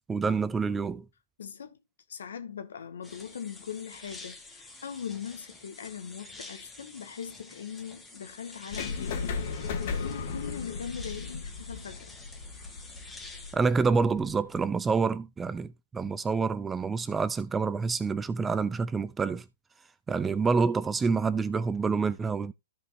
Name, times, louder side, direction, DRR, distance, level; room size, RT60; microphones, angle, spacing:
voice 1, 0.1-1.0 13.5-19.4 20.1-22.5, right 5 dB, 10° right, 0.5 m, -27 dB
voice 2, 1.4-1.8 2.1-12.1 16.0-16.1, left 7 dB, 70° left, 1.9 m, -40 dB
sound 1, 3.0-13.5, left 2 dB, 5° left, 1.9 m, -48 dB
sound 2, 8.7-14.6, left 5 dB, 50° left, 2.3 m, -36 dB
14.5 x 5.2 x 2.7 m
hypercardioid pair, 130°, 0 cm